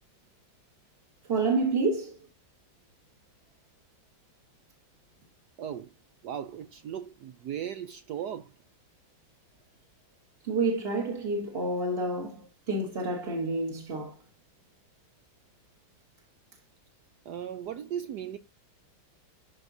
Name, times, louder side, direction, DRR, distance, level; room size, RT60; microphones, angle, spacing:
voice 1, 1.3-2.2 10.4-14.1, right 3 dB, 35° right, 1.2 m, -29 dB
voice 2, 5.6-5.9 6.2-8.5 17.3-18.4, right 9 dB, 75° right, 0.9 m, -37 dB
12.0 x 4.7 x 2.7 m
omnidirectional pair, 2.2 m